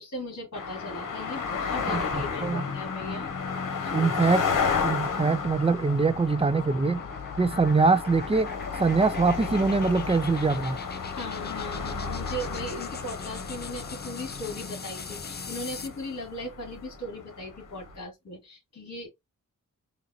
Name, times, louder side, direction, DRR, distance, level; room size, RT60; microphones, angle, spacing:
voice 1, 0.0-3.3 3.8-4.2 11.1-19.1, left 1 dB, 55° left, 2.2 m, -38 dB
sound 1, 0.5-18.0, left 5 dB, 80° left, 1.1 m, -33 dB
sound 2, 1.3-16.0, left 5 dB, 35° left, 0.5 m, -41 dB
voice 2, 1.9-2.6 3.9-4.4 4.8-7.0 7.4-8.5 8.8-10.8, right 4 dB, 20° right, 0.3 m, -23 dB
3.9 x 2.8 x 2.8 m
wide cardioid pair, 110°, 31 cm